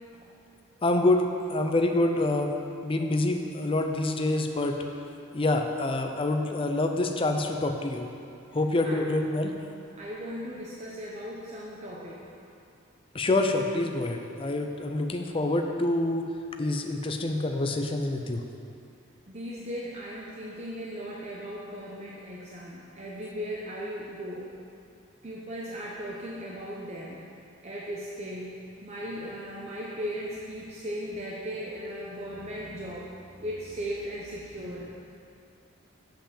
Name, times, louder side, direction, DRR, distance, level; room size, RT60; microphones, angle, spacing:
voice 1, 0.8-2.6 2.8-4.8 5.3-8.1 8.5-9.5 13.1-16.3 16.6-18.4, left 2 dB, 25° left, 4 dB, 0.5 m, -26 dB
voice 2, 9.9-12.3 19.3-24.5 25.2-27.3 27.6-28.5 28.8-34.9, equal, 30° right, -5 dB, 0.8 m, -37 dB
6.9 x 5.7 x 7.3 m, 2.6 s
head